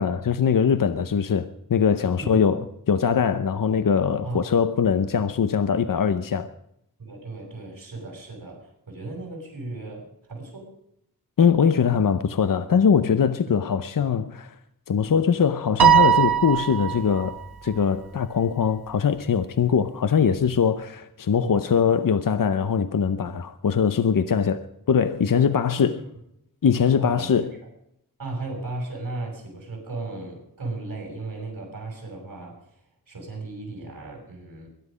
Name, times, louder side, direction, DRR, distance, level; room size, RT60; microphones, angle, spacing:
voice 1, 0.0-6.5 11.4-14.5 14.9-17.4 17.6-26.0 26.6-27.5, left 7 dB, 60° left, 0.8 m, -22 dB
voice 2, 4.2-4.5 7.0-10.7 21.4-21.7 25.7-26.0 27.0-27.3 28.2-32.7 33.1-34.7, right 2 dB, 60° right, 6.6 m, -36 dB
Piano, 15.8-17.3, right 9 dB, 80° right, 1.3 m, -19 dB
22.5 x 10.5 x 5.1 m
wide cardioid pair, 100°, 37 cm